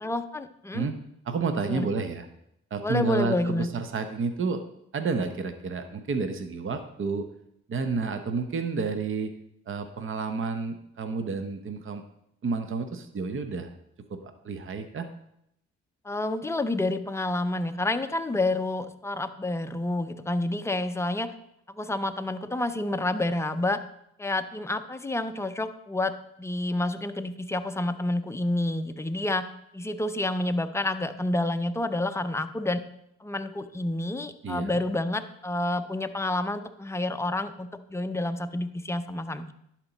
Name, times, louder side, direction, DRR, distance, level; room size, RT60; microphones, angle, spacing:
voice 1, 0.0-0.9 1.6-1.9 2.8-3.7 16.0-21.3 21.8-23.8 24.2-26.1 26.4-29.5 29.7-32.8 33.2-39.5, left 2 dB, 10° left, 8 dB, 0.5 m, -29 dB
voice 2, 1.3-2.3 2.7-4.6 4.9-7.3 7.7-9.3 9.7-12.0 12.4-13.7 14.1-15.1 34.4-34.7, right 4 dB, 45° right, 8 dB, 0.8 m, -30 dB
11.0 x 4.4 x 4.0 m, 0.76 s
cardioid pair, 70°, 29 cm